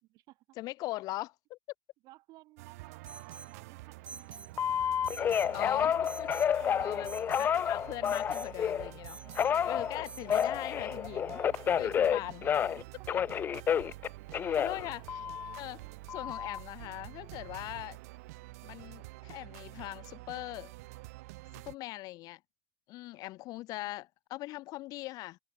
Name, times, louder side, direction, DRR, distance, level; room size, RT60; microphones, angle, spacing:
voice 1, 0.6-1.6 5.5-6.3 6.8-7.1 7.4-9.2 9.6-11.4 11.8-12.4 14.6-15.0 15.6-15.8 16.1-18.0 18.6-20.7 21.6-22.4 22.9-25.4, left 18 dB, 50° left, 1.3 m, -40 dB
voice 2, 2.0-4.9 5.4-5.9 6.6-7.3 9.2-9.9 12.0-12.4 12.8-13.1 14.0-14.1 14.6-14.9 23.8-23.9, right 19 dB, 55° right, 5.2 m, -56 dB
sound 1, 2.6-21.8, right 22 dB, 80° right, 2.1 m, -48 dB
Alarm, 3.1-3.5 4.1-4.5 5.1-5.5 6.1-6.5 7.1-7.5 8.1-8.5 9.1-9.5 10.1-10.5, right 4 dB, 15° right, 3.5 m, -47 dB
Telephone, 4.6-8.9 9.4-12.8 13.1-15.6 16.1-16.6, left 8 dB, 25° left, 0.3 m, -30 dB
supercardioid pair, 130°, 8 cm